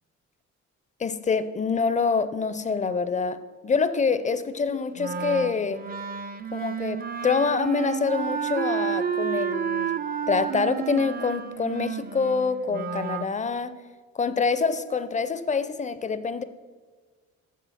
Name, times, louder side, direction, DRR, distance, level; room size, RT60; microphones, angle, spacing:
voice 1, 1.0-5.8 6.5-10.0 10.3-13.8 14.2-16.4, left 5 dB, 25° left, 12 dB, 0.5 m, -26 dB
Wind instrument woodwind instrument, 5.0-13.3, right 8 dB, 30° right, 0.4 m, -31 dB
7.3 x 6.7 x 5.6 m, 1.4 s
cardioid pair, 90°, 30 cm